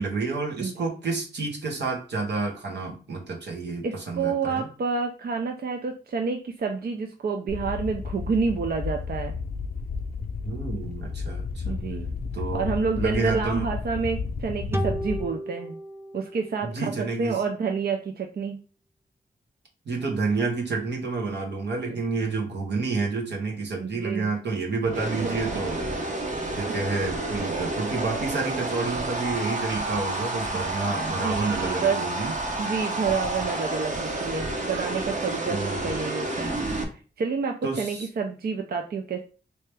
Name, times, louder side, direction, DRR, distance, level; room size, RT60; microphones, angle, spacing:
voice 1, 0.0-4.7 10.4-11.8 12.3-13.7 16.6-17.4 19.8-25.9 26.6-32.3 35.5-35.9 37.6-38.1, right 4 dB, 85° right, 0 dB, 1.0 m, -29 dB
voice 2, 0.6-0.9 3.8-9.3 11.6-12.1 12.5-15.8 16.1-16.9 17.2-18.6 23.8-24.3 25.2-25.3 31.2-32.0 32.6-36.6 37.2-39.2, right 5 dB, 65° right, 4 dB, 0.5 m, -29 dB
sound 1, 7.5-15.3, left 5 dB, 60° left, 0.6 m, -32 dB
sound 2, 14.7-18.1, right 1 dB, 15° right, 0.7 m, -35 dB
sound 3, 24.8-36.8, right 2 dB, 45° right, 0.9 m, -30 dB
3.3 x 2.8 x 3.3 m, 0.37 s
cardioid pair, 50°, 17 cm